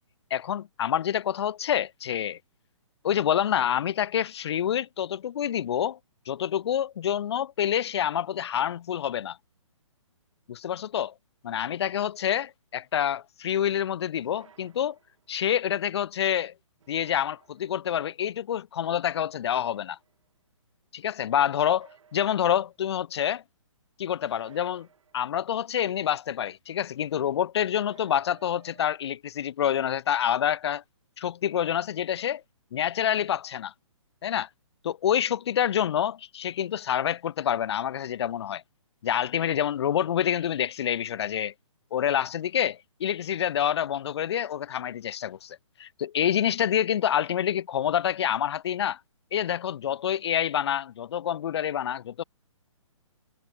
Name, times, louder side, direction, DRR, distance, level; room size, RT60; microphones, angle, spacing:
voice 1, 0.3-2.4 3.0-6.0 6.3-9.4 10.5-11.1 11.4-15.0 15.3-16.5 16.9-20.0 20.9-23.4 24.0-24.9 25.1-30.8 31.2-32.4 32.7-33.7 34.2-34.5 34.8-38.6 39.0-41.5 41.9-49.0 49.3-52.2, left 10 dB, 55° left, 0.4 m, -27 dB
sound 1, 14.2-15.4 16.8-18.0 19.3-20.3 21.6-22.8 24.3-25.6 27.7-28.9, right 7 dB, 70° right, 1.9 m, -59 dB
hypercardioid pair, 155°, 17 cm